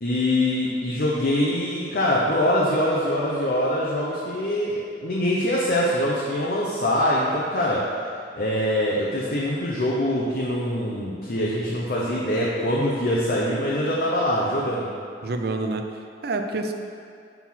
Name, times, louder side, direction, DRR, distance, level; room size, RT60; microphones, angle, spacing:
voice 1, 0.0-7.8 8.4-14.9, left 1 dB, 55° left, -5 dB, 0.8 m, -24 dB
voice 2, 15.2-16.7, right 2 dB, 60° right, 5 dB, 0.5 m, -28 dB
5.9 x 4.5 x 5.8 m, 2.4 s
head